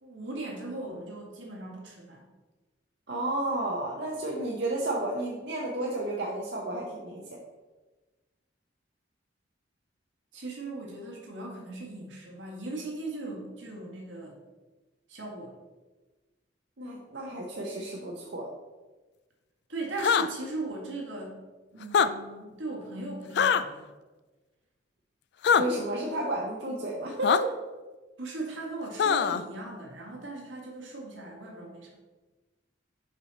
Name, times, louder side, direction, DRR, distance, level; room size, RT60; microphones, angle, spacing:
voice 1, 0.0-2.2 10.3-14.4 15.1-15.6 19.7-21.4 21.7-23.9 28.2-31.9, right 2 dB, 85° right, -1 dB, 1.8 m, -38 dB
voice 2, 3.1-7.4 16.8-18.5 25.5-27.5, right 1 dB, 60° right, -2 dB, 0.8 m, -32 dB
sound 1, 20.0-20.3 21.8-22.1 23.4-23.6 25.4-25.6 27.2-27.4 29.0-29.4, left 7 dB, 60° left, 0.3 m, -22 dB
6.2 x 5.5 x 4.1 m, 1.2 s
head